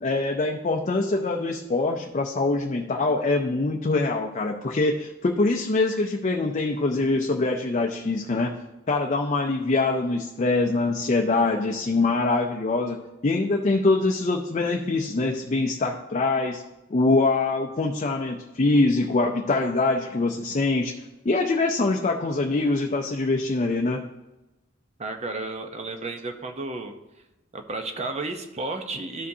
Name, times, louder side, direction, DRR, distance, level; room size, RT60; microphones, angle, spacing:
voice 1, 0.0-8.5 8.9-16.6 16.9-20.9 21.2-24.0, left 3 dB, 35° left, 2 dB, 0.5 m, -24 dB
voice 2, 25.0-26.9 27.5-29.3, right 3 dB, 35° right, 6 dB, 0.7 m, -32 dB
13.0 x 5.0 x 2.7 m, 1.0 s
head